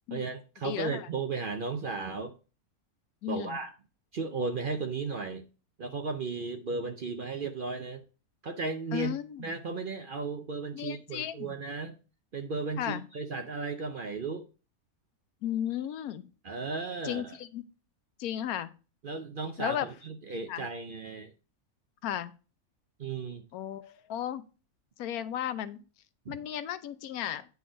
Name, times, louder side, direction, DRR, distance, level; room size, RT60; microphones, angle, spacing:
voice 1, 0.1-2.3 3.3-3.7 4.1-5.5 5.8-8.0 8.4-9.1 9.4-12.0 12.3-14.4 16.4-17.4 19.0-21.3 23.0-23.4 26.3-26.4, right 4 dB, 50° right, 7 dB, 0.7 m, -35 dB
voice 2, 0.6-1.1 3.2-3.6 8.9-9.5 10.7-11.6 12.8-13.0 15.4-16.3 17.0-17.6 18.2-18.7 19.6-19.9 20.5-20.6 22.0-22.3 23.5-24.4 25.0-25.8 26.3-27.5, left 11 dB, 85° left, 14 dB, 1.1 m, -34 dB
9.3 x 4.1 x 5.0 m, 0.34 s
omnidirectional pair, 1.5 m